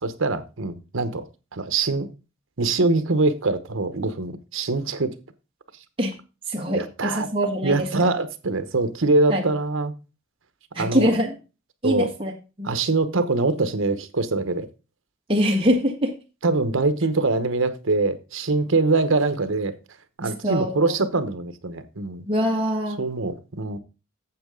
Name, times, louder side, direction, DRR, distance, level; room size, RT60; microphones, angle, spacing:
voice 1, 0.0-1.2 1.5-2.1 2.6-5.1 6.7-7.3 7.6-9.9 10.8-11.1 11.8-12.1 12.6-14.7 16.4-19.7 20.2-22.2 23.0-23.8, right 3 dB, 75° right, 1.0 m, -23 dB
voice 2, 6.5-8.1 9.3-9.5 10.8-11.4 11.8-12.3 12.6-12.7 15.3-16.1 20.2-21.0 22.3-23.0, equal, 25° right, 1.7 m, -23 dB
8.8 x 7.4 x 3.7 m
head